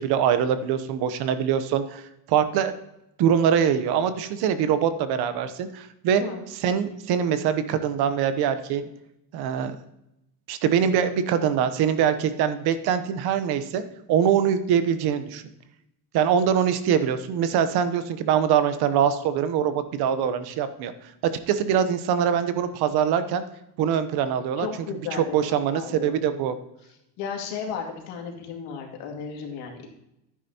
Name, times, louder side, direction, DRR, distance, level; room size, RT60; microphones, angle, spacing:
voice 1, 0.0-2.0 2.3-2.7 3.2-6.2 6.6-8.9 9.3-9.8 10.5-13.8 14.1-15.4 16.1-20.9 21.5-23.4 23.8-24.7 25.1-26.5, right 8 dB, 65° right, 11 dB, 1.0 m, -23 dB
voice 2, 24.6-26.1 27.2-29.9, left 6 dB, 85° left, 1 dB, 2.4 m, -34 dB
11.5 x 9.7 x 2.9 m, 0.85 s
cardioid pair, 160°, 41 cm